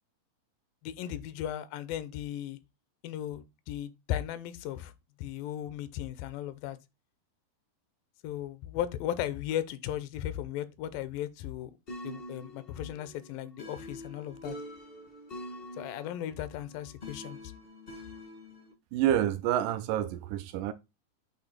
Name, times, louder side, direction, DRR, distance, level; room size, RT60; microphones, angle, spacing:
voice 1, 0.8-2.6 3.0-4.9 5.2-6.8 8.2-11.7 12.0-14.6 15.8-17.4, left 11 dB, 85° left, 2.3 m, -36 dB
sound 1, 11.9-18.7, left 1 dB, 45° left, 0.7 m, -45 dB
voice 2, 18.9-20.7, right 11 dB, 80° right, 2.0 m, -28 dB
8.4 x 2.8 x 4.4 m
omnidirectional pair, 3.9 m